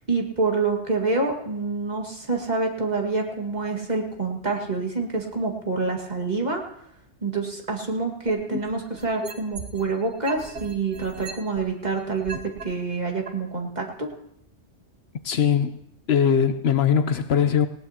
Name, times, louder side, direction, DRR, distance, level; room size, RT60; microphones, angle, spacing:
voice 1, 0.1-6.6 7.2-14.1, right 3 dB, 40° right, 2.1 m, -27 dB
sound 1, 8.3-9.9 10.2-12.6 13.3-13.4, right 1 dB, 85° right, 1.7 m, -36 dB
voice 2, 15.2-15.8 16.1-17.7, left 8 dB, 65° left, 0.9 m, -20 dB
19.5 x 17.5 x 2.9 m
omnidirectional pair, 1.2 m